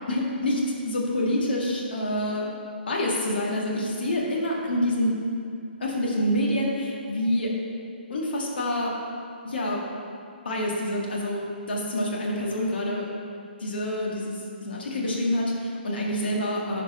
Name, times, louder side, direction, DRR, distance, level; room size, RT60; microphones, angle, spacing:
voice 1, 0.1-2.5 2.9-5.1 5.8-7.5 8.1-8.9 9.4-9.8 10.4-13.1 13.6-16.8, left 1 dB, 65° left, -3 dB, 1.8 m, -27 dB
10.5 x 4.5 x 5.4 m, 2.4 s
figure-of-eight pair, 135°, 6 cm